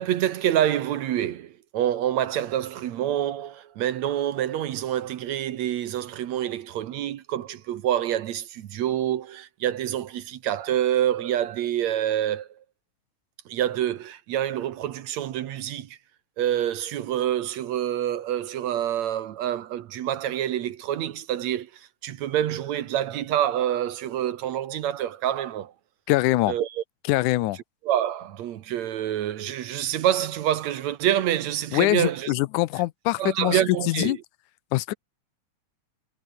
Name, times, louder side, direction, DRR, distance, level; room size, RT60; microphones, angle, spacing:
voice 1, 0.0-12.5 13.5-16.0 16.4-25.7 26.5-26.8 27.8-32.3 33.2-34.2, right 11 dB, 70° right, 2.3 m, -27 dB
voice 2, 26.1-26.5 27.1-27.6 31.7-34.2 34.7-34.9, left 18 dB, 85° left, 2.2 m, -23 dB
omnidirectional pair, 3.5 m